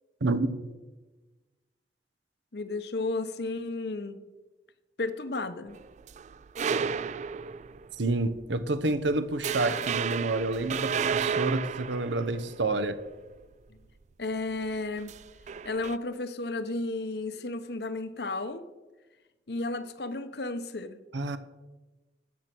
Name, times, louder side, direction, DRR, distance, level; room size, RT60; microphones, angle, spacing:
voice 1, 0.2-0.7 8.0-13.0 21.1-21.4, right 2 dB, 85° right, 0.9 m, -28 dB
voice 2, 2.5-4.2 5.0-5.8 13.7-13.8 14.2-15.1 15.6-18.6 19.5-21.0, left 2 dB, 65° left, 0.9 m, -33 dB
sound 1, 5.7-8.0 8.4-8.6 9.0-9.1 9.4-12.9 15.0-16.0, right 6 dB, 40° right, 0.3 m, -32 dB
13.0 x 9.1 x 6.1 m
head